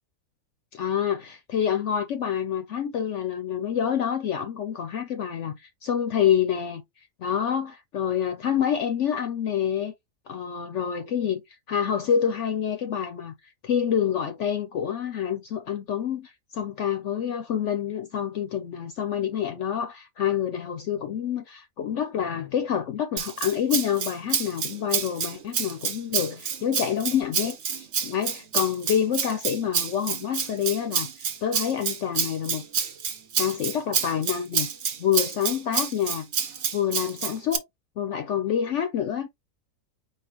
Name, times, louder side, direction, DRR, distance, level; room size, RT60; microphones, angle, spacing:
voice 1, 0.7-6.8 7.2-9.9 10.3-11.4 11.7-13.3 13.6-31.1 31.4-32.6 33.4-34.7 35.0-36.3 36.7-37.6 38.0-39.3, left 9 dB, 65° left, 0.8 m, -27 dB
Rattle (instrument), 23.2-37.6, right 7 dB, 55° right, 1.0 m, -28 dB
4.8 x 2.8 x 3.0 m
omnidirectional pair, 1.5 m